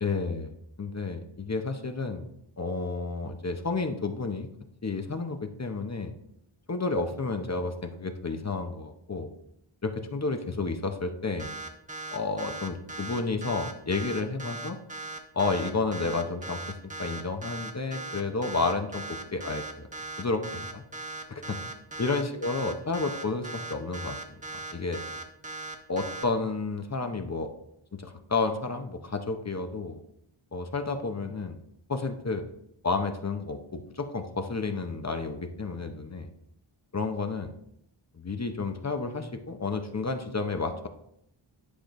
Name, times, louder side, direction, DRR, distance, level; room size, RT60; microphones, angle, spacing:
voice 1, 0.0-0.5 0.8-2.2 2.6-4.5 4.8-6.1 6.7-9.3 9.8-11.5 12.1-14.8 15.3-16.6 17.0-19.9 20.2-20.4 21.3-21.6 22.0-24.2 24.7-25.0 25.9-27.5 27.9-30.0 30.5-31.6 31.9-32.4 32.8-36.3 36.9-37.5 38.2-40.9, left 3 dB, 35° left, 6 dB, 0.7 m, -31 dB
sound 1, 11.4-26.2, right 3 dB, 15° right, 0.9 m, -38 dB
10.0 x 5.1 x 3.1 m, 0.76 s
wide cardioid pair, 85°, 50 cm